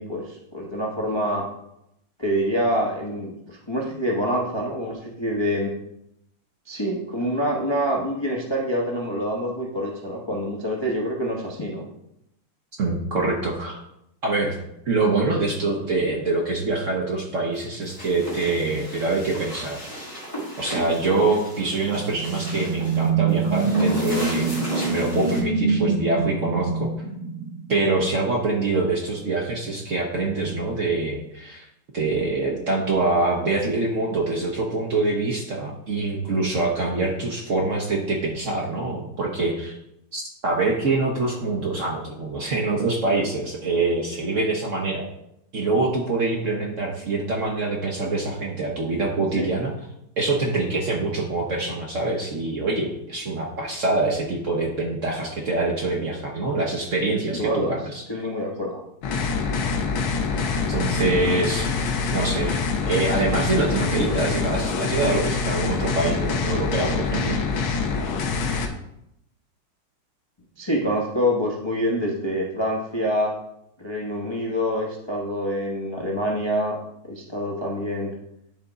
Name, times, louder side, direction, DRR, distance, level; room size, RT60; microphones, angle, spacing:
voice 1, 0.0-1.5 2.2-5.7 6.7-11.9 21.2-21.3 49.4-49.5 57.3-57.7 58.1-58.8 63.8-64.1 65.0-65.3 70.6-73.3 73.8-76.8 77.0-78.1, equal, 40° left, -3 dB, 0.3 m, -26 dB
voice 2, 12.8-13.8 14.2-14.6 14.9-19.8 20.6-26.9 27.7-31.7 31.9-39.7 40.1-45.1 45.5-49.7 50.2-58.0 60.7-61.7 62.1-62.6 62.9-67.4, right 3 dB, 55° right, -1 dB, 0.9 m, -25 dB
sound 1, 17.5-25.4, right 1 dB, 15° left, 2.1 m, -35 dB
sound 2, 21.8-28.1, right 4 dB, 80° right, 2.0 m, -25 dB
sound 3, 59.0-68.7, left 5 dB, 75° left, 1.6 m, -25 dB
10.5 x 3.6 x 3.9 m, 0.80 s
omnidirectional pair, 2.3 m